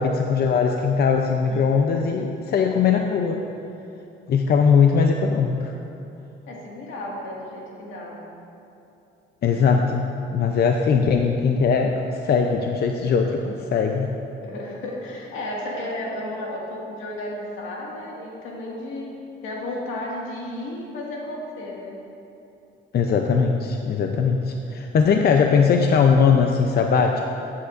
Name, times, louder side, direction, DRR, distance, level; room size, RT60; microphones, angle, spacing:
voice 1, 0.0-3.4 4.3-5.7 9.4-14.1 22.9-27.2, left 5 dB, 55° left, 3 dB, 0.5 m, -20 dB
voice 2, 1.5-1.9 6.5-8.2 14.4-19.1 19.4-22.0, left 1 dB, 85° left, -3 dB, 1.9 m, -33 dB
13.0 x 8.3 x 2.5 m, 2.8 s
cardioid pair, 90°, 20 cm